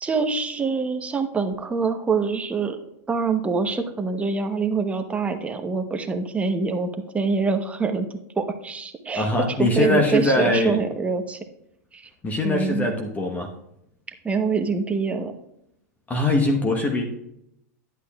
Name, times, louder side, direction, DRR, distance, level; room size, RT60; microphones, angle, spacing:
voice 1, 0.0-2.8 3.1-8.1 8.4-9.3 9.6-11.4 11.9-12.1 12.4-12.9 14.2-15.3, right 4 dB, 15° right, 6 dB, 0.9 m, -25 dB
voice 2, 9.1-10.8 12.2-13.5 16.1-17.0, left 2 dB, 15° left, 3 dB, 1.0 m, -22 dB
10.5 x 8.2 x 2.3 m, 0.79 s
hypercardioid pair, 115°, 9 cm